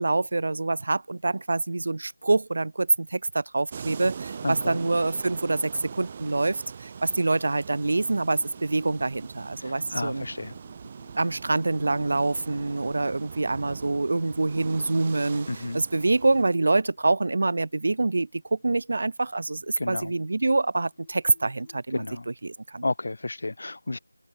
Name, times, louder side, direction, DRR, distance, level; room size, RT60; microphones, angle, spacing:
voice 1, 0.0-10.3 11.2-15.5 15.7-22.1 22.4-22.8, right 2 dB, 50° right, 0.6 m, -26 dB
sound 1, 3.7-16.4, right 6 dB, 25° right, 2.7 m, -41 dB
voice 2, 4.4-4.8 9.6-10.5 15.5-15.8 19.8-20.1 21.9-22.3 22.8-24.0, left 2 dB, 55° left, 4.1 m, -32 dB
Singing, 7.8-21.8, left 5 dB, 25° left, 7.6 m, -59 dB
open air
figure-of-eight pair, 170°, 0 cm